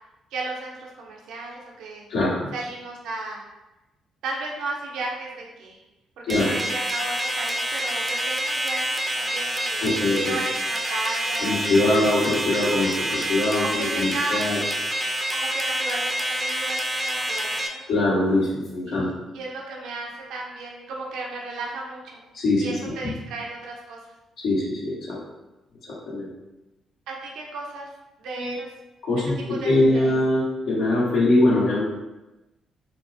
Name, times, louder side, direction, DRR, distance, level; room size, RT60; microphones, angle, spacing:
voice 1, 0.3-2.1 2.5-3.4 4.2-5.8 6.2-9.8 10.2-12.0 12.8-13.0 13.6-14.5 15.3-17.8 18.9-22.2 22.6-24.0 27.1-27.9 28.2-28.7 29.2-29.3 29.5-30.1, right 2 dB, 85° right, -2 dB, 0.6 m, -34 dB
voice 2, 2.1-2.5 6.3-6.5 9.8-10.3 11.4-14.6 17.9-19.1 22.3-22.6 23.0-23.1 24.4-25.2 25.9-26.3 28.4-28.6 29.0-31.8, left 2 dB, 75° left, -7 dB, 1.4 m, -22 dB
sound 1, 6.3-17.7, right 1 dB, 15° right, 0.5 m, -27 dB
4.3 x 2.1 x 2.7 m, 1.0 s
cardioid pair, 90°, 0 cm